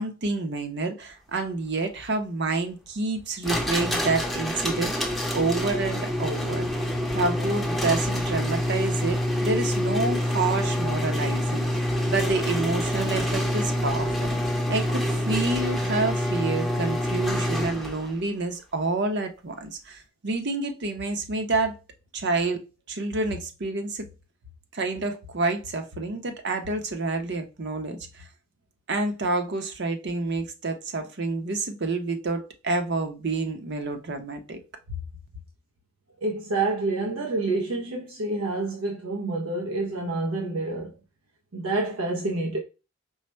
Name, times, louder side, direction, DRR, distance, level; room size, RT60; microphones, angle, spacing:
voice 1, 0.0-6.7 7.1-21.8 22.1-22.6 22.9-24.1 24.7-28.2 28.9-34.6 34.9-35.0, right 3 dB, 55° right, 0.8 m, -28 dB
sound 1, 3.4-18.1, left 1 dB, ahead, 0.7 m, -26 dB
voice 2, 36.2-40.9 41.5-42.6, right 2 dB, 90° right, 0.7 m, -28 dB
4.8 x 2.1 x 4.2 m
head